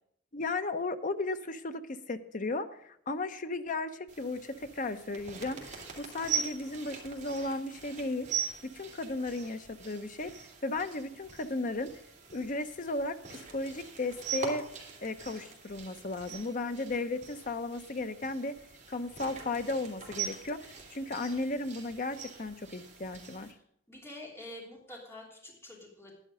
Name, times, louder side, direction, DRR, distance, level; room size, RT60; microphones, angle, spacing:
voice 1, 0.3-8.3 8.6-10.3 10.6-11.9 12.3-14.6 15.0-18.5 18.9-20.6 20.9-23.5, left 2 dB, 45° left, 9 dB, 0.8 m, -35 dB
sound 1, 4.1-23.5, right 6 dB, 40° right, 2.9 m, -42 dB
voice 2, 23.9-26.1, left 1 dB, 15° left, -3 dB, 3.0 m, -47 dB
11.0 x 11.0 x 5.0 m, 0.72 s
head